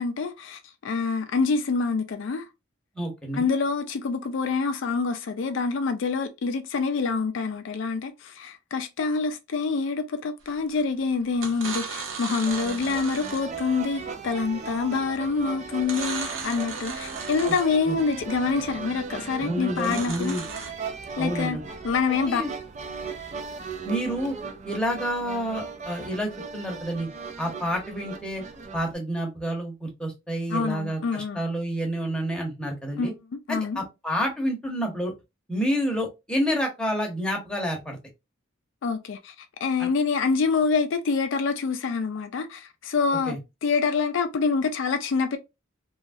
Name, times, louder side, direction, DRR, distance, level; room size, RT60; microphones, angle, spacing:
voice 1, 0.0-2.4 3.3-20.4 21.2-21.6 21.8-22.4 30.5-31.4 33.0-33.8 38.8-39.3 39.6-43.4 43.6-45.4, left 4 dB, 65° left, 0.4 m, -26 dB
voice 2, 2.9-3.5 17.9-18.0 19.4-20.4 21.2-21.6 22.3-22.5 23.8-24.3 24.6-27.1 27.4-28.4 28.7-33.1 33.5-35.1 35.5-38.0 39.8-39.9 43.3-43.4, equal, 5° left, 0.8 m, -29 dB
sound 1, 10.5-10.8 11.3-13.6 15.8-17.8 19.7-20.7, right 5 dB, 80° right, 0.9 m, -36 dB
sound 2, 12.4-28.9, right 5 dB, 35° right, 0.4 m, -37 dB
2.9 x 2.3 x 2.5 m
head